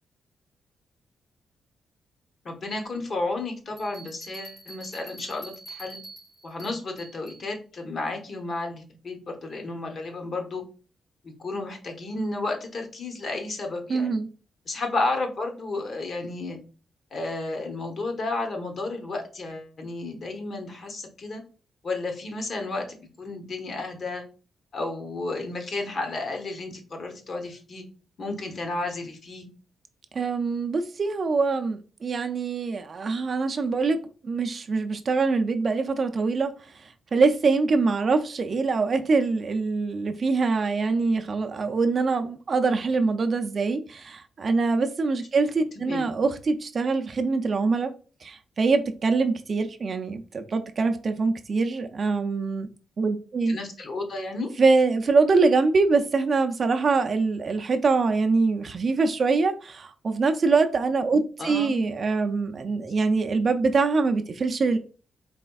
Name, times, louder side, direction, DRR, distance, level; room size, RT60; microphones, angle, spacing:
voice 1, 2.4-6.0 6.4-10.6 11.2-14.2 14.7-16.6 17.1-21.4 21.8-24.2 24.7-27.8 28.2-29.5 45.7-46.1 53.5-54.5 61.4-61.9, left 2 dB, 50° left, 0.8 m, -32 dB
sound 1, 3.8-7.4, right 2 dB, 90° left, 1.9 m, -44 dB
voice 2, 13.9-14.3 30.1-34.0 34.2-36.5 37.1-47.9 48.2-52.7 53.0-53.6 54.6-64.8, right 4 dB, 45° right, 0.4 m, -24 dB
4.1 x 3.3 x 2.3 m
cardioid pair, 100°, 0 cm